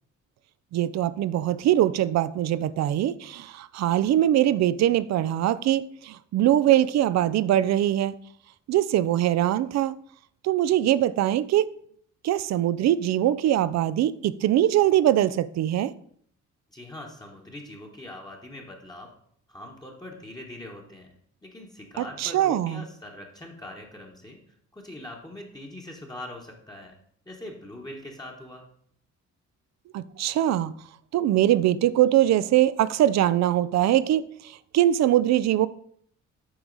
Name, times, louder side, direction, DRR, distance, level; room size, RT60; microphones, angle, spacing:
voice 1, 0.7-8.2 8.7-9.9 10.4-11.7 12.2-15.9 22.0-22.8 29.9-30.7 31.1-35.7, right 12 dB, 60° right, 0.4 m, -22 dB
voice 2, 16.7-19.1 19.5-21.1 21.4-24.4 24.7-27.0 27.3-28.7, left 1 dB, 15° left, 1.2 m, -42 dB
7.7 x 4.6 x 3.9 m
cardioid pair, 90°, 30 cm